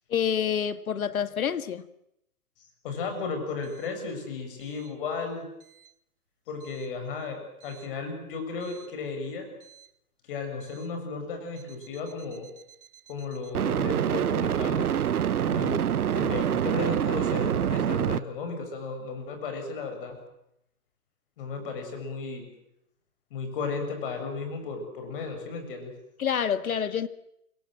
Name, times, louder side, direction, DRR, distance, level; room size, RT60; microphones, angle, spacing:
voice 1, 0.1-1.8 26.2-27.1, left 8 dB, 75° left, 12 dB, 2.0 m, -27 dB
voice 2, 2.8-5.4 6.5-9.5 10.3-12.5 13.1-14.9 15.5-15.8 16.1-20.2 21.4-22.5 23.3-25.9, left 4 dB, 40° left, 5 dB, 7.0 m, -34 dB
sound 1, 8.7-8.8 13.6-18.2, right 9 dB, 85° right, 1.1 m, -26 dB
27.5 x 24.0 x 7.7 m, 0.80 s
hypercardioid pair, 160°, 43 cm